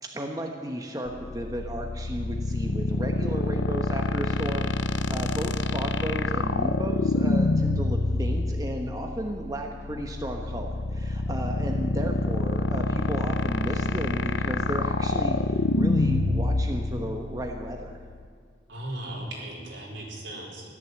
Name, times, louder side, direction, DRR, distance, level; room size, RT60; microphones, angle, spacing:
voice 1, 0.0-4.7 5.1-17.9, right 1 dB, 20° right, 2 dB, 1.1 m, -34 dB
sound 1, 1.1-18.3, left 3 dB, 90° left, 0.6 m, -27 dB
voice 2, 18.7-20.7, right 1 dB, 85° right, -3 dB, 4.1 m, -37 dB
14.5 x 12.0 x 7.8 m, 2.1 s
head